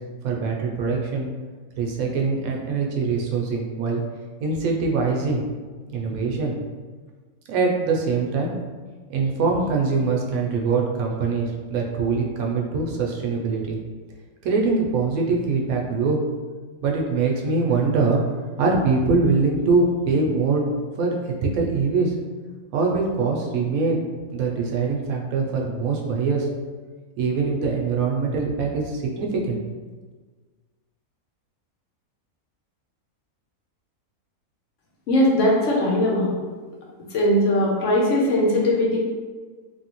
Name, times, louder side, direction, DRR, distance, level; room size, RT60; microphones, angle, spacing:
voice 1, 0.2-1.3 1.8-4.0 4.4-5.4 5.9-6.6 7.5-8.5 9.1-13.8 14.4-16.2 16.8-18.2 18.6-20.6 21.0-22.1 22.7-24.1 24.3-26.5 27.2-29.6, right 4 dB, 80° right, 0 dB, 1.0 m, -23 dB
voice 2, 35.1-36.3 37.1-39.0, left 1 dB, 65° left, -3 dB, 1.0 m, -20 dB
3.1 x 2.7 x 2.9 m, 1.4 s
omnidirectional pair, 1.5 m